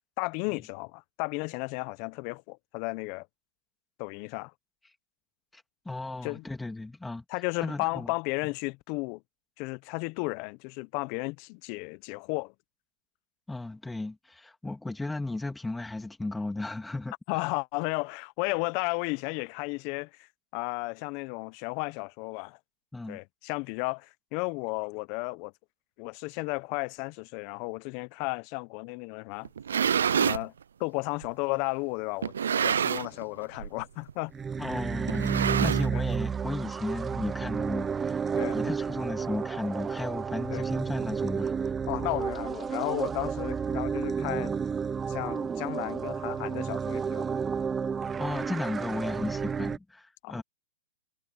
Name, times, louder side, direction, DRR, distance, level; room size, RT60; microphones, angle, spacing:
voice 1, 0.2-3.3 4.0-4.5 6.2-6.4 7.3-9.2 9.6-12.5 17.3-20.1 20.5-22.6 23.1-25.5 26.0-29.5 30.1-30.5 30.8-34.3 35.9-36.0 38.3-38.6 40.5-40.6 41.9-44.5 45.1-47.4 50.2-50.4, left 28 dB, 45° left, 1.1 m, -34 dB
voice 2, 5.5-8.1 13.5-17.1 22.9-23.2 34.6-41.7 48.2-50.4, left 2 dB, 5° left, 3.1 m, -35 dB
sound 1, 29.4-30.5 31.2-31.3 32.2-33.2 33.5-33.8 34.1-34.2 35.1-36.2, right 7 dB, 80° right, 0.5 m, -27 dB
sound 2, 34.3-49.8, right 6 dB, 15° right, 0.8 m, -31 dB
hypercardioid pair, 120°, 0 cm